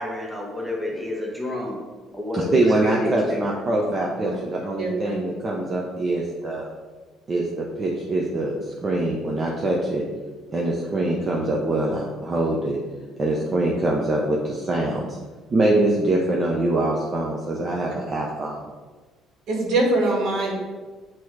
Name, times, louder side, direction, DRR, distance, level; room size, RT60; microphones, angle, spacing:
voice 1, 0.0-1.8 2.1-3.4, left 1 dB, 5° right, -2 dB, 0.9 m, -30 dB
voice 2, 2.3-6.7 7.3-10.0 10.5-12.8 13.2-15.1 15.5-18.6, right 2 dB, 30° right, -2 dB, 0.7 m, -24 dB
voice 3, 4.8-5.1 19.5-20.5, right 2 dB, 60° right, -1 dB, 1.8 m, -22 dB
8.5 x 3.0 x 4.6 m, 1.3 s
cardioid pair, 150°, 0 cm